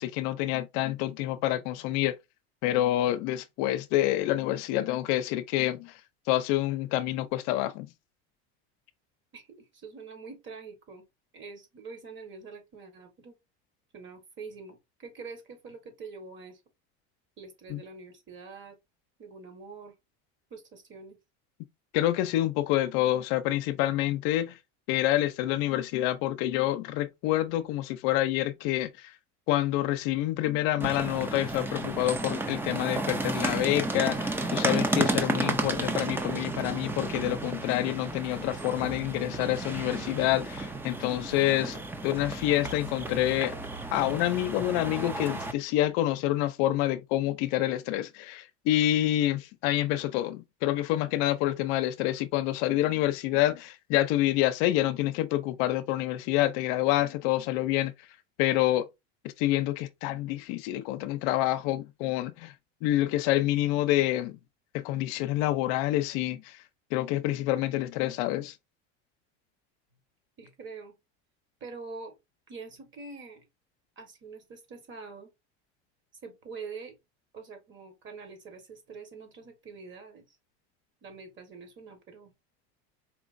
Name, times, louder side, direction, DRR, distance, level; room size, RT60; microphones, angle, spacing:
voice 1, 0.0-2.2 2.6-5.9 6.3-7.9 17.7-17.8 21.9-24.6 24.9-29.1 29.5-41.8 42.0-43.5 43.9-57.9 58.4-58.9 59.4-62.5 62.8-64.4 64.7-66.6 66.9-68.5, left 14 dB, 65° left, 0.6 m, -27 dB
voice 2, 9.3-11.1 11.3-13.3 13.9-16.6 17.4-18.8 19.2-19.9 20.5-21.2 70.4-70.9 71.6-72.1 72.5-73.5 74.0-75.3 76.2-76.9 77.3-80.4 81.0-82.3, right 4 dB, 35° right, 1.5 m, -45 dB
sound 1, 30.8-45.5, right 2 dB, 5° right, 0.3 m, -32 dB
4.4 x 3.0 x 2.5 m
supercardioid pair, 135°, 33 cm